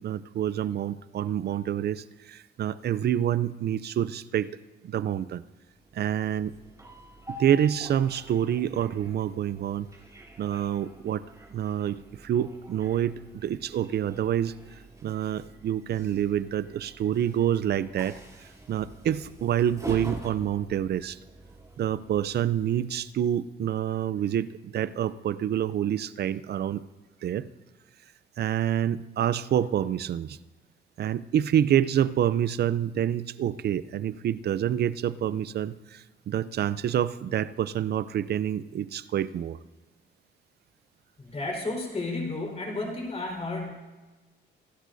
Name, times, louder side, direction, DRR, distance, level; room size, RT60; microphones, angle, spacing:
voice 1, 0.0-4.5 4.8-5.4 5.9-6.5 7.3-9.9 10.4-11.2 11.5-14.5 15.0-18.2 18.7-21.2 21.8-26.8 27.2-27.5 28.4-30.4 31.0-39.6, right 10 dB, 55° right, 16 dB, 0.5 m, -27 dB
Train, 5.8-23.0, right 1 dB, 15° right, 3.2 m, -46 dB
voice 2, 41.2-43.7, left 2 dB, 30° left, 1 dB, 4.6 m, -32 dB
25.5 x 12.5 x 2.7 m, 1.2 s
cardioid pair, 90°, 20 cm